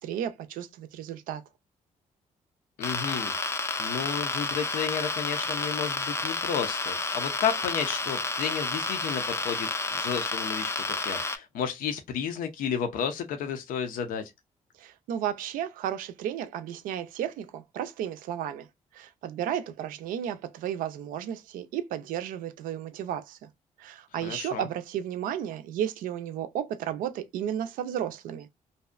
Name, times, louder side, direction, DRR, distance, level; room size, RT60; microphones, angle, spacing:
voice 1, 0.0-1.4 14.8-18.7 18.9-23.5 23.8-28.5, right 10 dB, 90° right, 0.4 m, -33 dB
voice 2, 2.8-3.3 3.8-10.7 11.0-14.3 24.2-24.6, left 7 dB, 85° left, 0.5 m, -32 dB
sound 1, 2.8-11.4, left 3 dB, 20° left, 0.4 m, -30 dB
2.6 x 2.1 x 2.3 m
cardioid pair, 85°, 14 cm